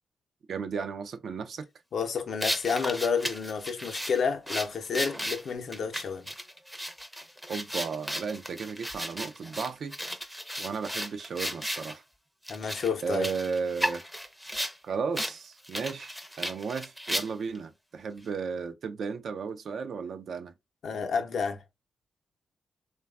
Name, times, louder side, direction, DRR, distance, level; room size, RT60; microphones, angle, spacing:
voice 1, 0.5-1.7 7.5-9.9 10.6-12.0 13.0-14.0 14.8-20.5, right 5 dB, 70° right, 0.4 m, -34 dB
voice 2, 1.9-6.3 12.5-13.3 20.8-21.6, left 5 dB, 70° left, 0.6 m, -30 dB
sound 1, 2.4-11.9 12.4-14.8 15.1-15.3 15.6-17.6, equal, 5° right, 0.5 m, -35 dB
3.1 x 2.2 x 2.3 m
cardioid pair, 65°, 0 cm